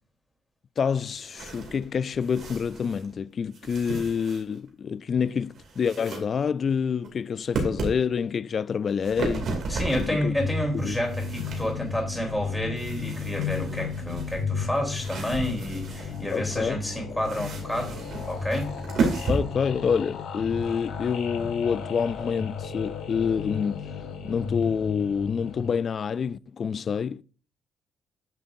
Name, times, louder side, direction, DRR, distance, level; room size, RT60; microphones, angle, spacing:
voice 1, 0.8-9.5 10.0-10.3 10.8-11.0 16.3-16.8 19.3-23.9 24.2-27.2, left 6 dB, 50° left, 0.3 m, -27 dB
sound 1, 1.0-3.2 3.5-4.7 5.2-6.2 6.6-7.1 7.5-8.0 8.8-10.2 10.7-12.0 12.7-16.4 17.2-19.4, right 3 dB, 65° right, 2.5 m, -33 dB
voice 2, 9.7-18.7, left 1 dB, 5° left, 3.4 m, -30 dB
sound 2, 9.8-25.7, left 5 dB, 85° left, 1.8 m, -34 dB
9.1 x 5.8 x 2.6 m
cardioid pair, 90°, 0 cm